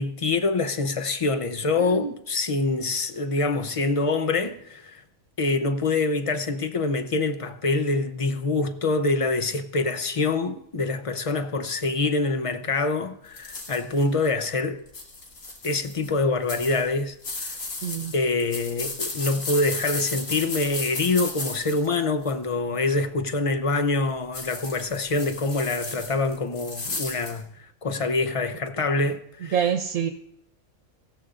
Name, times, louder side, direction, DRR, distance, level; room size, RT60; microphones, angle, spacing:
voice 1, 0.0-5.0 5.4-14.8 15.6-17.2 18.1-29.7, left 3 dB, 35° left, 0.5 m, -25 dB
voice 2, 1.8-2.1 17.8-18.1 29.5-30.1, right 8 dB, 85° right, 1.3 m, -26 dB
sound 1, 13.4-14.0 14.9-16.1 16.5-22.4 24.3-27.4, left 3 dB, 85° left, 2.4 m, -34 dB
19.0 x 15.5 x 2.5 m
omnidirectional pair, 1.5 m